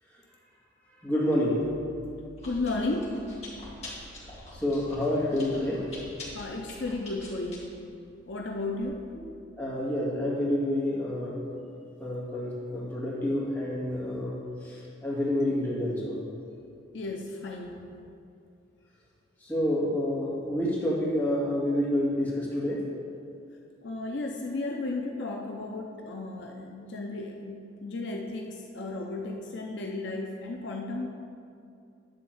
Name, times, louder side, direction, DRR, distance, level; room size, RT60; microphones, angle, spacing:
voice 1, 1.0-1.6 4.5-5.8 9.1-9.3 9.6-11.4 12.0-16.2 19.4-22.8, left 1 dB, 10° left, -8 dB, 2.1 m, -28 dB
Chewing mastication, 1.6-8.8, left 1 dB, 35° left, 2.1 m, -46 dB
voice 2, 2.4-3.2 6.3-7.7 8.3-9.1 16.9-17.8 23.8-31.1, left 2 dB, 65° left, 1 dB, 0.7 m, -34 dB
10.5 x 3.6 x 7.2 m, 2.5 s
head